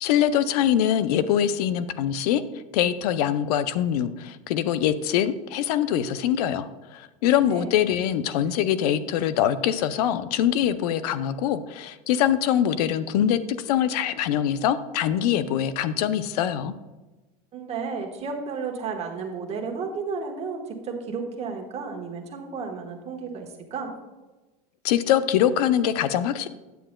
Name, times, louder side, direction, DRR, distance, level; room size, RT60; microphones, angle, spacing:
voice 1, 0.0-2.4 2.7-16.7 24.8-26.5, left 10 dB, 85° left, 14 dB, 0.5 m, -23 dB
voice 2, 17.5-23.9, right 5 dB, 35° right, 2 dB, 1.3 m, -33 dB
9.2 x 8.5 x 2.2 m, 1.1 s
supercardioid pair, 125°, 19 cm